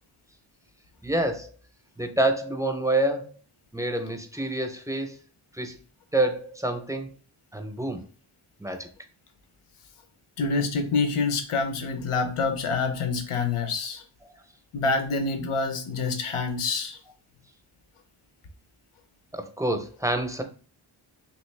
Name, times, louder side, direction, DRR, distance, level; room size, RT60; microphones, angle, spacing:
voice 1, 1.0-1.5 2.0-3.3 3.7-5.2 5.5-5.8 6.1-7.1 7.5-8.0 8.6-8.9 19.3-20.4, right 1 dB, 5° right, 0.5 m, -27 dB
voice 2, 10.4-14.0 14.7-17.0, left 4 dB, 90° left, 0.6 m, -27 dB
3.1 x 2.9 x 3.2 m
wide cardioid pair, 60°, 49 cm